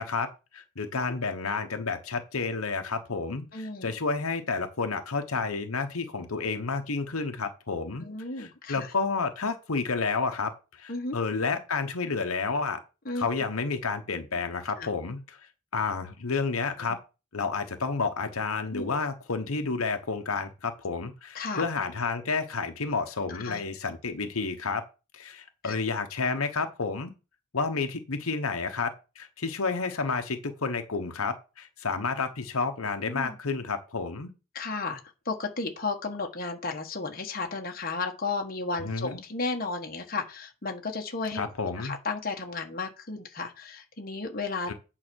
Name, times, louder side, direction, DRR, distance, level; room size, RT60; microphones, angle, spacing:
voice 1, 0.0-8.1 8.4-12.8 13.1-15.4 15.7-17.0 17.3-24.8 25.1-27.1 27.5-34.3 38.8-39.2 41.4-42.0 44.7-44.8, left 4 dB, 90° left, 1.1 m, -30 dB
voice 2, 3.5-3.9 8.0-8.9 10.9-11.2 13.0-13.3 14.8-14.9 18.7-18.9 21.3-21.7 23.3-23.6 25.6-25.7 33.1-33.4 34.5-35.0 35.2-41.4 41.8-44.7, left 3 dB, 45° left, 1.4 m, -33 dB
8.9 x 4.0 x 6.3 m
head